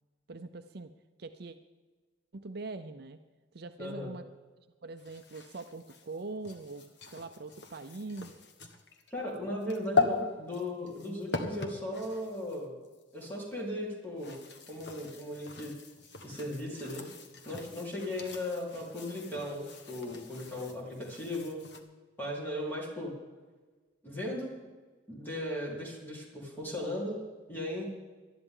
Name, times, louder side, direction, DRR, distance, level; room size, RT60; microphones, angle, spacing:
voice 1, 0.3-0.9 1.2-1.6 2.3-3.2 3.5-4.2 4.6-8.3, right 3 dB, 55° right, 9 dB, 0.6 m, -42 dB
voice 2, 3.8-4.1 9.1-12.7 13.1-14.3 14.7-15.7 16.2-17.0 17.5-21.6 22.2-23.1 24.0-24.5 25.1-27.2 27.5-27.9, left 1 dB, 10° left, -4 dB, 3.9 m, -37 dB
sound 1, 5.0-13.4 14.0-21.8, left 4 dB, 60° left, 1.3 m, -38 dB
19.0 x 12.5 x 3.8 m, 1.3 s
head